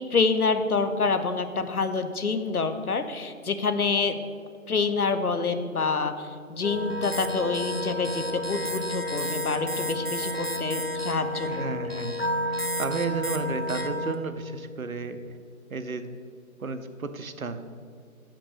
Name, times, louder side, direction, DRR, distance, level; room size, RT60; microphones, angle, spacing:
voice 1, 0.1-4.2 4.7-11.9, left 4 dB, 85° left, 9 dB, 0.9 m, -27 dB
sound 1, 6.6-14.1, left 1 dB, 45° left, 0.4 m, -30 dB
voice 2, 11.4-15.2 15.7-16.1 16.6-17.6, right 4 dB, 70° right, 9 dB, 0.7 m, -33 dB
6.1 x 5.9 x 6.5 m, 2.2 s
figure-of-eight pair, 175°, 43 cm